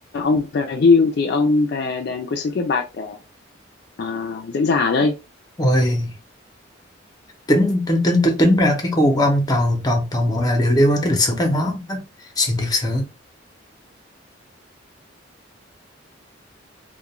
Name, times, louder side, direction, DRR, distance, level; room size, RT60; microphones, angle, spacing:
voice 1, 0.1-3.2 4.0-5.1, left 4 dB, 55° left, 0.3 m, -20 dB
voice 2, 5.6-6.1 7.5-12.0 12.4-13.1, left 1 dB, 20° left, 0.6 m, -19 dB
2.4 x 2.1 x 2.9 m
head